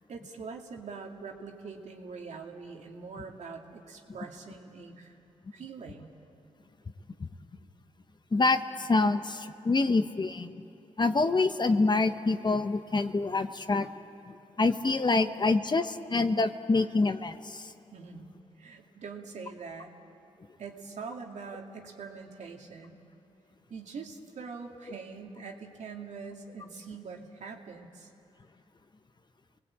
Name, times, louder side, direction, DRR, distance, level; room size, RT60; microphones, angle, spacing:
voice 1, 0.1-5.1 5.5-6.1 17.9-18.3 18.6-19.9 20.6-23.0 23.7-28.1, right 5 dB, 70° right, 2 dB, 2.5 m, -43 dB
voice 2, 8.3-10.5 11.0-13.9 14.3-17.6, left 3 dB, 35° left, 9 dB, 1.2 m, -26 dB
29.0 x 19.5 x 8.8 m, 2.9 s
cardioid pair, 60°, 13 cm